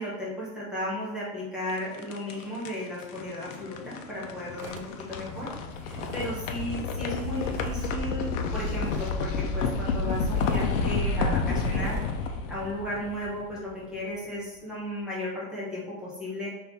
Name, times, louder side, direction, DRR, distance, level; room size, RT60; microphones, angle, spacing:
voice 1, 0.0-4.8 5.1-5.5 5.8-16.5, left 1 dB, ahead, -7 dB, 0.3 m, -35 dB
sound 1, 1.7-13.8, left 4 dB, 60° left, 0.6 m, -30 dB
sound 2, 4.6-7.8 8.1-9.3 9.7-9.8 10.1-10.7 11.1-11.3 11.6-12.0, right 5 dB, 65° right, 0.7 m, -43 dB
4.2 x 2.7 x 3.4 m, 0.95 s
supercardioid pair, 155°, 44 cm